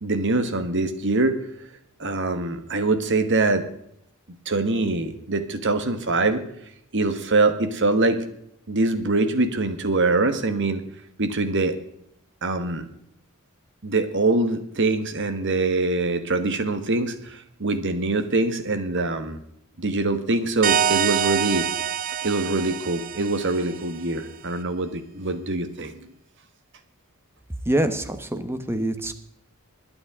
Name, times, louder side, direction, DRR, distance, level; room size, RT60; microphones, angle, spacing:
voice 1, 0.0-1.4 2.0-3.6 4.4-6.4 6.9-8.2 8.7-10.8 11.2-11.8 12.4-12.9 13.8-19.4 19.8-21.7 22.2-26.1, right 2 dB, 55° right, 9 dB, 1.4 m, -23 dB
sound 1, 20.6-24.0, right 9 dB, 40° right, 0.5 m, -26 dB
voice 2, 27.7-29.1, right 1 dB, 10° right, 8 dB, 1.1 m, -25 dB
22.0 x 8.7 x 3.7 m, 0.73 s
head